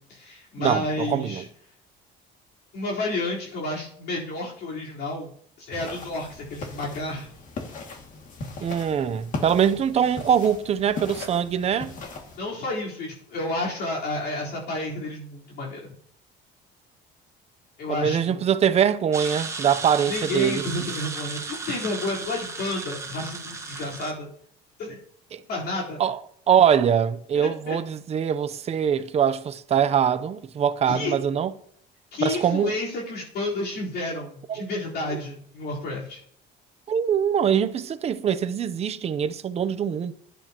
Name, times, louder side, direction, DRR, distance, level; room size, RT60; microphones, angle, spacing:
voice 1, 0.0-1.4 2.7-5.3 5.6-7.3 12.4-15.9 17.8-18.4 20.1-24.3 24.8-25.0 25.5-26.0 27.3-27.8 30.8-31.1 32.1-36.2, left 2 dB, 60° left, 4.2 m, -31 dB
voice 2, 0.6-1.4 8.6-11.9 17.9-20.6 25.3-25.4 26.0-26.2 26.5-31.5 32.2-32.7 34.5-34.7 35.1-35.2 36.9-40.1, right 8 dB, 35° right, 0.7 m, -23 dB
sound 1, 5.7-12.4, left 3 dB, 45° left, 2.3 m, -38 dB
sound 2, 19.1-24.1, right 4 dB, 15° right, 1.4 m, -35 dB
21.5 x 11.5 x 3.0 m
cardioid pair, 155°, 19 cm